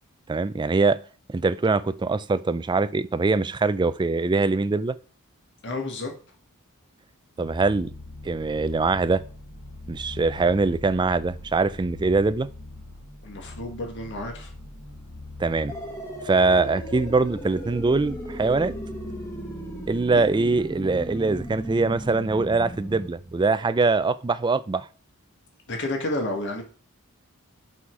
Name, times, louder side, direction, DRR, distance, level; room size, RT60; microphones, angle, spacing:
voice 1, 0.3-1.0 1.3-5.0 7.4-7.9 8.2-9.2 9.9-12.5 15.4-15.7 16.2-18.7 19.9-24.9, right 3 dB, 20° right, 0.4 m, -23 dB
voice 2, 5.6-6.1 13.2-14.5 20.1-20.2 25.7-26.6, left 2 dB, 55° left, 1.8 m, -30 dB
sound 1, 7.4-24.1, left 2 dB, 80° left, 2.7 m, -42 dB
sound 2, 15.7-23.1, right 1 dB, 15° left, 1.4 m, -36 dB
6.1 x 5.7 x 4.6 m
head